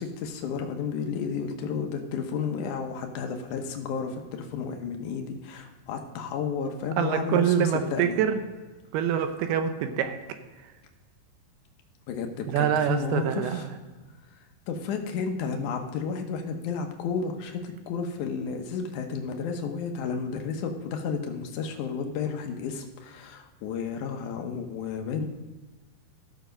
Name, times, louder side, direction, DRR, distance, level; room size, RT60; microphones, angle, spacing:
voice 1, 0.0-8.2 12.1-13.7 14.7-25.3, left 6 dB, 75° left, 4 dB, 1.8 m, -32 dB
voice 2, 7.0-8.4 8.9-10.2 12.5-13.7, right 9 dB, 80° right, 8 dB, 2.6 m, -25 dB
13.0 x 6.9 x 5.1 m, 1.3 s
omnidirectional pair, 4.9 m